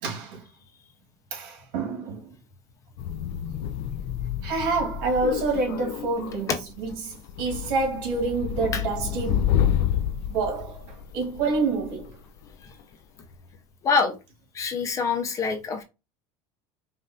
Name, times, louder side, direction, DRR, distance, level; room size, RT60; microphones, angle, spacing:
voice 1, 0.0-0.4 1.3-2.3 4.4-9.6 10.3-12.2, right 3 dB, 80° right, 1.9 m, -28 dB
sound 1, 3.0-12.5, left 10 dB, 65° left, 0.4 m, -29 dB
voice 2, 13.8-14.1 14.5-15.8, left 5 dB, 25° left, 0.6 m, -25 dB
5.4 x 2.5 x 2.7 m
cardioid pair, 155°, 12 cm